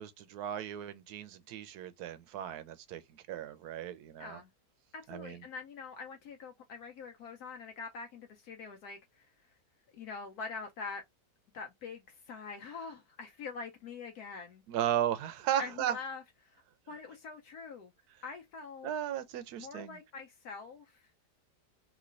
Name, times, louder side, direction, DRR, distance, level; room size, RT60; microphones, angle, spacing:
voice 1, 0.0-4.4 5.1-5.4 14.7-16.0 18.8-20.0, right 11 dB, 75° right, 1.1 m, -35 dB
voice 2, 4.9-9.3 9.9-11.0 11.5-14.6 15.6-16.6 16.9-17.9 18.2-18.9 19.6-21.1, left 5 dB, 70° left, 1.1 m, -44 dB
3.1 x 2.9 x 2.4 m
omnidirectional pair, 1.8 m